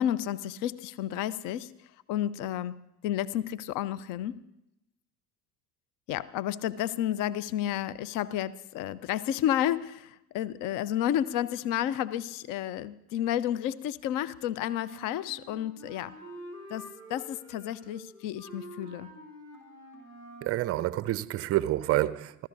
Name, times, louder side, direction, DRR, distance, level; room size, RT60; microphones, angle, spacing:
voice 1, 0.0-1.7 2.1-2.8 3.0-4.4 6.1-16.2 16.7-19.1, left 11 dB, 40° left, 0.6 m, -31 dB
Wind instrument woodwind instrument, 14.7-20.6, right 1 dB, 90° left, 5.8 m, -47 dB
voice 2, 20.4-22.5, right 15 dB, 30° right, 0.5 m, -28 dB
27.5 x 15.0 x 2.7 m
figure-of-eight pair, 65°, 49 cm